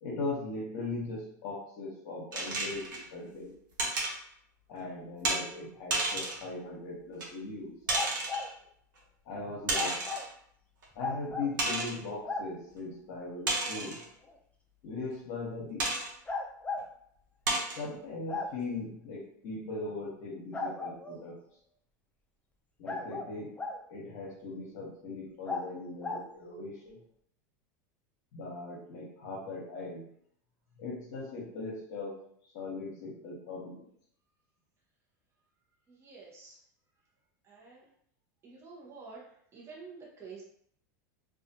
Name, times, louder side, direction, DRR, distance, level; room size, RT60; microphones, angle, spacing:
voice 1, 0.0-3.5 4.7-7.8 9.3-10.0 10.9-14.0 14.8-15.9 17.8-21.4 22.8-23.6 23.9-27.0 28.3-30.1 30.8-32.2 32.5-33.9, left 3 dB, 60° left, -4 dB, 0.9 m, -39 dB
sound 1, 2.3-3.0 3.8-4.2 5.2-5.4 5.9-6.5 7.2-7.3 7.9-8.5 9.7-10.3 10.8-10.9 11.6-12.0 13.5-14.1 15.8-16.1 16.8-16.9 17.5-17.8, right 2 dB, 85° right, 0.8 m, -31 dB
sound 2, 7.9-8.5 9.7-10.3 11.0-11.5 12.2-12.5 14.2-14.3 16.3-16.8 18.3-18.5 20.5-21.2 22.8-23.8 25.4-25.6 26.0-26.3, left 3 dB, 10° left, 0.4 m, -35 dB
voice 2, 35.9-36.6 37.4-37.8 38.4-40.4, right 4 dB, 25° right, -4 dB, 0.8 m, -49 dB
2.4 x 2.4 x 2.7 m, 0.65 s
hypercardioid pair, 110°, 10 cm